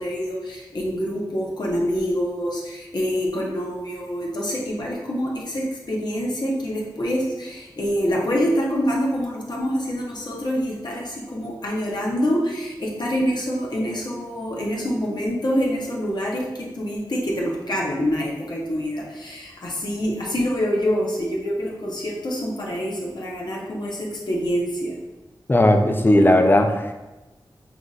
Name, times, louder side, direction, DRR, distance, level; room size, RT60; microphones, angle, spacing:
voice 1, 0.0-25.0, equal, 60° left, -3 dB, 0.9 m, -26 dB
voice 2, 25.5-26.9, left 1 dB, 25° left, 5 dB, 0.5 m, -16 dB
5.8 x 2.6 x 2.4 m, 1.1 s
cardioid pair, 40°, 8 cm